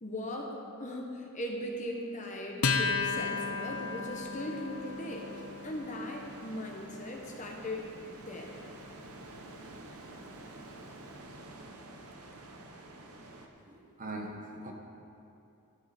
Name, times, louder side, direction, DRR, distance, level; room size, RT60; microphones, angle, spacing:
voice 1, 0.0-5.3 5.6-8.5, left 1 dB, 35° left, 0 dB, 1.2 m, -39 dB
Acoustic guitar, 2.6-9.5, left 5 dB, 80° left, 0.7 m, -36 dB
sound 1, 2.8-13.5, right 2 dB, 80° right, 1.1 m, -50 dB
voice 2, 13.7-14.7, right 1 dB, 35° right, 1 dB, 1.2 m, -41 dB
12.5 x 10.5 x 4.4 m, 2.6 s
head